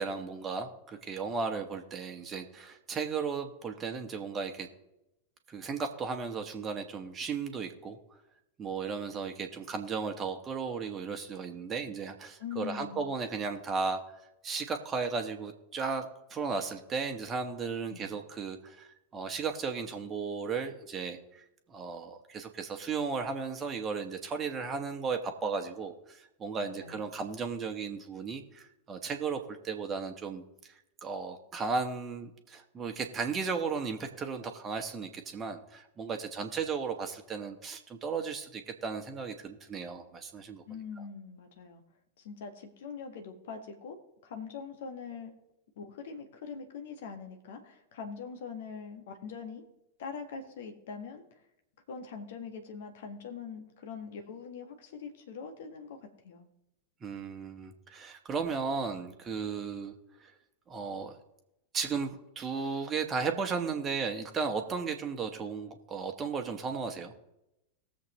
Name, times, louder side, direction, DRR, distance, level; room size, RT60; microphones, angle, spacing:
voice 1, 0.0-4.7 5.5-8.0 8.6-14.0 14.4-30.7 31.0-40.6 41.0-41.1 57.0-59.9 60.2-60.3 60.7-61.1 61.7-67.1, right 5 dB, 20° right, 4 dB, 1.3 m, -35 dB
voice 2, 12.4-13.0 17.9-18.1 26.5-27.0 40.7-41.8 42.2-44.0 44.2-45.3 45.8-49.6 50.0-51.2 51.9-56.0 56.2-56.5, left 6 dB, 55° left, 5 dB, 1.6 m, -43 dB
19.0 x 7.5 x 3.1 m, 0.88 s
figure-of-eight pair, 90°, 0 cm